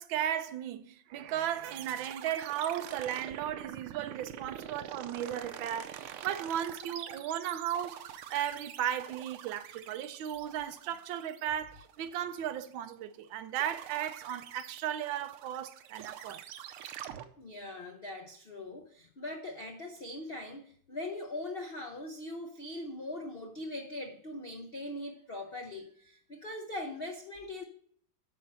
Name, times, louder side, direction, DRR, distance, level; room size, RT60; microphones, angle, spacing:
voice 1, 0.0-8.0 8.3-16.4, right 10 dB, 70° right, 1.4 m, -35 dB
sound 1, 1.6-13.1 13.6-17.3, right 10 dB, 85° right, 1.6 m, -46 dB
voice 2, 17.4-27.6, left 1 dB, 85° left, 0.5 m, -41 dB
9.2 x 5.8 x 5.4 m
omnidirectional pair, 2.4 m